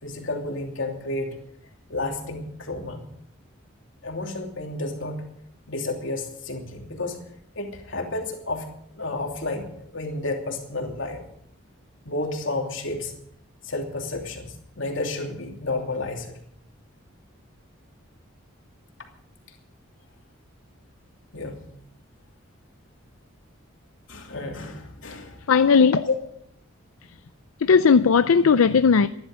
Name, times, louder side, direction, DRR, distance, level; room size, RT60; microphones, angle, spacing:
voice 1, 0.0-1.3 1.9-3.1 4.0-5.3 5.7-7.2 7.6-11.2 12.0-13.1 13.6-16.3 21.3-21.7 24.1-25.4 26.1-26.2, left 2 dB, 65° left, 2.9 m, -31 dB
voice 2, 25.5-26.0 27.6-29.1, left 5 dB, 85° left, 0.5 m, -17 dB
15.0 x 11.5 x 6.7 m
head